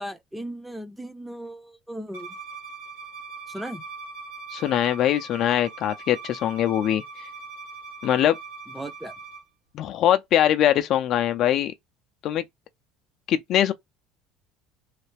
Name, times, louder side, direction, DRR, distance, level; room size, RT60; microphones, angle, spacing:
voice 1, 0.0-2.4 3.5-3.8 8.7-9.1, right 1 dB, 5° right, 0.6 m, -37 dB
Bowed string instrument, 2.1-9.4, right 4 dB, 85° right, 1.7 m, -41 dB
voice 2, 4.5-7.0 8.0-8.4 9.7-11.7 12.2-12.4 13.3-13.7, left 11 dB, 55° left, 0.5 m, -22 dB
3.2 x 2.4 x 3.4 m
supercardioid pair, 90°, 0 cm